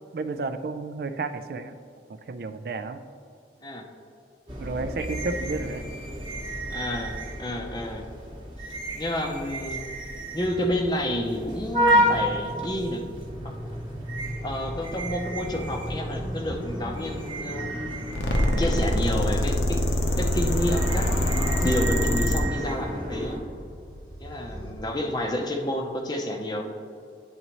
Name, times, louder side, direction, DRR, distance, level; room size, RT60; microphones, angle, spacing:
voice 1, 0.1-1.7 2.1-3.0 4.6-5.9, right 3 dB, 55° right, 10 dB, 0.3 m, -32 dB
sound 1, 4.5-23.4, equal, 25° right, 1.0 m, -31 dB
voice 2, 6.7-8.0 8.9-9.9 10.3-13.0 13.4-13.6 14.4-17.7 18.6-19.9 20.2-23.4 24.2-26.6, left 1 dB, 25° left, 2 dB, 0.6 m, -30 dB
sound 2, 10.4-24.7, equal, 5° left, 1.0 m, -39 dB
sound 3, 18.1-22.4, left 1 dB, 85° left, 0.8 m, -24 dB
11.0 x 4.0 x 3.0 m, 2.4 s
head